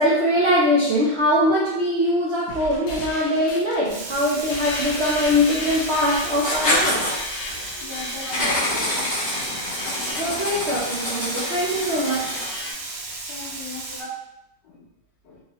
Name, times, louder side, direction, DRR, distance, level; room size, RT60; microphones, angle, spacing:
voice 1, 0.0-7.1 8.2-8.4 10.1-12.3 13.9-14.1, equal, 65° right, -7 dB, 0.6 m, -22 dB
sound 1, 2.5-12.7, left 2 dB, 65° left, 1.1 m, -34 dB
Frying (food), 3.9-14.0, right 3 dB, 85° right, 1.4 m, -35 dB
Writing, 6.3-7.1 8.3-12.6, left 1 dB, 40° left, 1.1 m, -26 dB
voice 2, 7.8-8.9 9.5-9.6 13.3-13.9 14.6-14.8 15.2-15.4, left 4 dB, 90° left, -2 dB, 1.5 m, -38 dB
3.6 x 2.7 x 2.9 m, 0.85 s
omnidirectional pair, 1.9 m